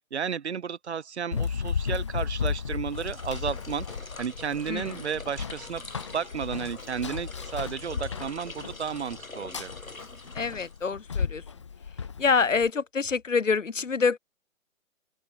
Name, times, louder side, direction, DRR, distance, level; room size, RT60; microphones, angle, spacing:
voice 1, 0.1-9.7, right 7 dB, 50° right, 2.3 m, -33 dB
Run, 1.3-12.7, left 6 dB, 20° left, 0.5 m, -34 dB
sound 1, 2.9-11.2, left 2 dB, 80° left, 5.3 m, -45 dB
voice 2, 4.7-5.0 10.3-11.4 12.2-14.2, left 5 dB, 65° left, 3.2 m, -26 dB
open air
figure-of-eight pair, 135°, 41 cm